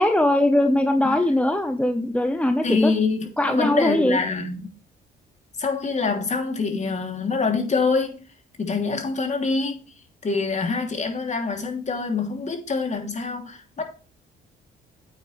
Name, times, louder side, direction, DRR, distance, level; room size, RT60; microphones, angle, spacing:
voice 1, 0.0-2.9 3.4-4.2, left 1 dB, 5° left, 1.1 m, -21 dB
voice 2, 2.6-4.8 5.6-8.2 8.6-13.8, left 4 dB, 35° left, 3.1 m, -25 dB
9.0 x 8.9 x 3.4 m
cardioid pair, 90°, 20 cm